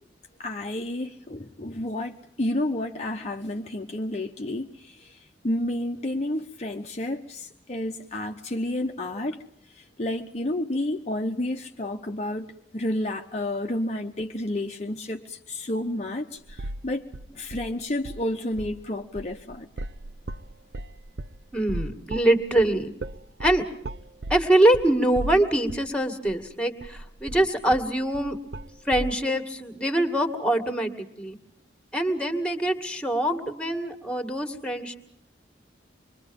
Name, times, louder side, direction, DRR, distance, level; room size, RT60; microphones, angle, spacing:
voice 1, 0.4-9.4 9.7-17.0 17.3-19.7, left 1 dB, 35° left, 0.9 m, -30 dB
sound 1, 16.5-16.9 17.1-18.3 18.5-18.8 19.2-25.9 26.3-26.4 26.8-29.2, right 1 dB, 65° right, 0.8 m, -36 dB
voice 2, 21.5-22.9 23.4-23.6 24.3-28.4 28.9-31.4 31.9-35.0, right 1 dB, 5° left, 2.0 m, -24 dB
26.5 x 23.0 x 5.3 m
head